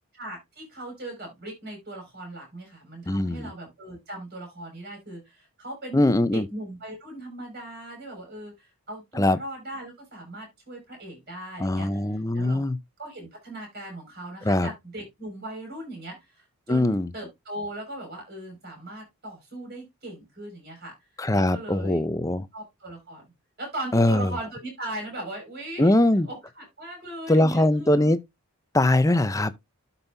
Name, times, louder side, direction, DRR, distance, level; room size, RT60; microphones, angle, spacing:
voice 1, 0.1-12.6 13.0-20.9 21.3-22.0 22.5-23.3 23.6-25.9 26.2-28.1, right 1 dB, 45° right, 6.9 m, -39 dB
voice 2, 3.1-3.5 5.9-6.4 9.1-9.4 11.6-12.8 14.4-14.7 16.7-17.1 21.2-22.5 23.9-24.3 25.8-26.3 27.3-28.2 28.7-29.5, left 1 dB, 15° left, 0.6 m, -21 dB
12.5 x 5.6 x 2.7 m
head